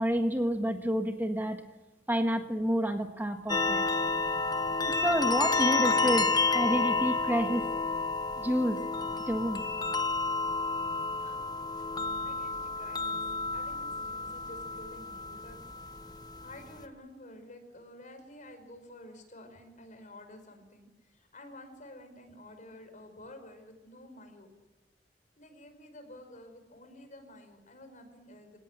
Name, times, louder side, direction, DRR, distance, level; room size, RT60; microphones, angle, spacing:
voice 1, 0.0-1.6 2.1-3.8 4.8-7.7 8.3-8.8 9.3-9.6, equal, 10° right, 4 dB, 1.6 m, -29 dB
sound 1, 3.5-16.8, left 3 dB, 25° left, 1.1 m, -30 dB
voice 2, 11.2-13.2 13.5-15.6 15.9-24.5 25.4-28.6, left 1 dB, 45° left, 7 dB, 5.2 m, -51 dB
26.5 x 18.0 x 9.2 m, 1.0 s
head